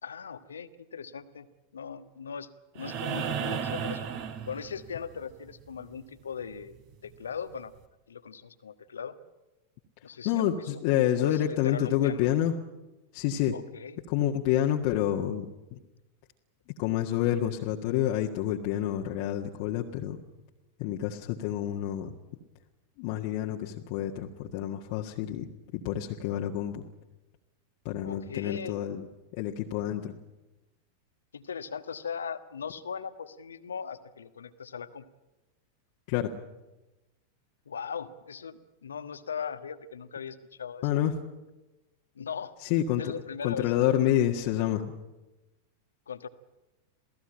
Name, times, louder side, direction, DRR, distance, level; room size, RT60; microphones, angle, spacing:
voice 1, 0.0-1.5 1.7-2.5 2.8-4.1 4.5-6.7 7.0-7.7 8.1-9.2 10.0-10.8 11.2-12.2 13.5-14.0 28.0-28.8 31.3-35.0 37.7-41.0 42.1-42.5 43.0-43.7 46.1-46.3, left 6 dB, 70° left, 11 dB, 1.4 m, -39 dB
sound 1, 2.8-5.1 6.9-7.0, right 7 dB, 45° right, 3.3 m, -33 dB
voice 2, 10.2-12.5 13.1-13.5 14.1-15.8 16.8-20.2 20.8-22.1 23.0-26.8 27.8-29.1 29.3-30.1 36.1-36.3 40.8-41.2 42.6-43.0 43.4-44.8, left 11 dB, 45° left, 0 dB, 1.7 m, -28 dB
28.0 x 17.5 x 8.9 m, 1.0 s
figure-of-eight pair, 90°, 0 cm